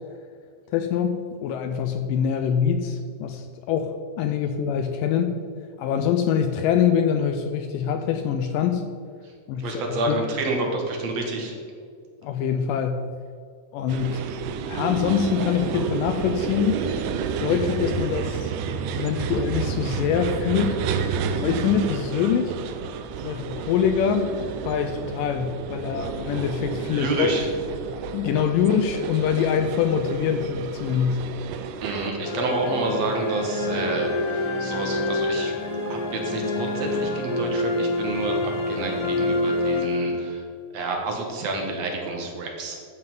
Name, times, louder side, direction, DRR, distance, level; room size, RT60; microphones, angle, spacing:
voice 1, 0.7-5.3 5.8-8.8 9.5-10.2 12.2-13.0 13.7-14.2 14.7-16.8 17.4-18.5 18.9-20.8 21.0-22.5 23.2-24.3 24.7-27.4 28.1-31.2, left 8 dB, 80° left, 7 dB, 2.1 m, -24 dB
voice 2, 9.6-11.6 26.9-27.5 31.8-35.5 35.9-38.4 38.7-40.4 40.7-42.8, right 2 dB, 55° right, 1 dB, 2.3 m, -28 dB
sound 1, 13.9-32.1, right 6 dB, 80° right, 2.0 m, -30 dB
sound 2, 32.2-40.6, left 2 dB, 45° left, 2.6 m, -27 dB
13.5 x 5.6 x 5.4 m, 2.1 s
omnidirectional pair, 4.2 m